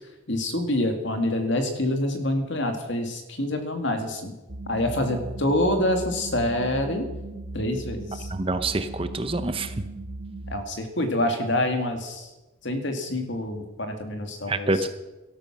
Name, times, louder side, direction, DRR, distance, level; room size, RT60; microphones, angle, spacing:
voice 1, 0.3-4.3 4.7-7.1 7.5-8.3 10.5-12.3 12.6-14.7, left 1 dB, 60° left, 5 dB, 2.4 m, -26 dB
sound 1, 4.5-10.6, right 2 dB, 90° right, 1.6 m, -37 dB
voice 2, 8.3-9.7 14.5-14.9, right 2 dB, 25° right, 10 dB, 0.8 m, -26 dB
17.5 x 13.0 x 6.1 m, 1.1 s
head